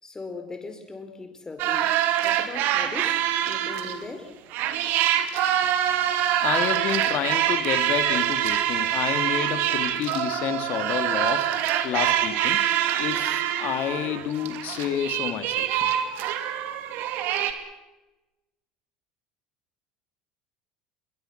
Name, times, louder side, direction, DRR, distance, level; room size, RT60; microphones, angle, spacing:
voice 1, 0.0-4.4, left 3 dB, 15° left, 7 dB, 5.1 m, -39 dB
sound 1, 1.6-4.1 4.5-17.5, right 11 dB, 60° right, 2.8 m, -25 dB
voice 2, 6.4-11.5 11.8-12.6 13.0-15.9, left 9 dB, 50° left, 9 dB, 2.8 m, -29 dB
27.5 x 22.5 x 6.1 m, 1.0 s
hypercardioid pair, 75°, 4 cm